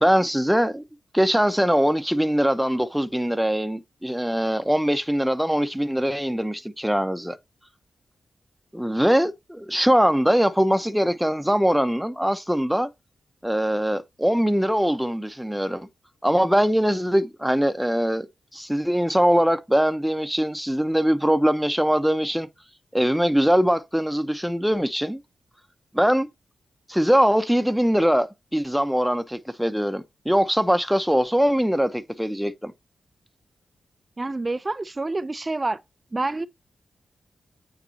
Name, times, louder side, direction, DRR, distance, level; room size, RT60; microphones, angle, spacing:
voice 1, 0.0-0.8 1.1-7.4 8.7-12.9 13.4-15.9 16.2-18.3 18.5-22.5 22.9-25.2 25.9-26.3 26.9-32.7, equal, ahead, 0.9 m, -22 dB
voice 2, 34.2-35.8 36.1-36.5, right 2 dB, 25° right, 0.4 m, -27 dB
9.0 x 4.1 x 2.8 m
cardioid pair, 85°, 0 cm